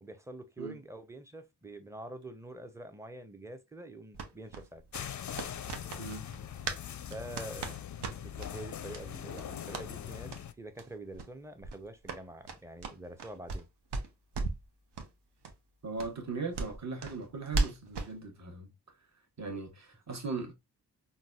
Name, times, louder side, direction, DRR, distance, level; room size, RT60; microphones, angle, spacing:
voice 1, 0.0-4.8 7.1-7.7 8.2-13.7 20.1-20.2, right 1 dB, 5° right, 0.6 m, -46 dB
sound 1, 4.1-6.8 7.1-8.5 8.9-9.0 9.3-9.9 10.3-10.4 10.7-10.9 11.1-11.3 11.6-13.6 13.9-14.7 14.9-15.1 15.4-15.5 16.0-18.1, right 3 dB, 70° right, 0.7 m, -37 dB
sound 2, 4.9-10.5, left 9 dB, 45° left, 0.4 m, -41 dB
voice 2, 15.8-18.7 19.4-20.5, right 4 dB, 40° right, 1.1 m, -38 dB
3.9 x 2.3 x 2.3 m
cardioid pair, 40°, 42 cm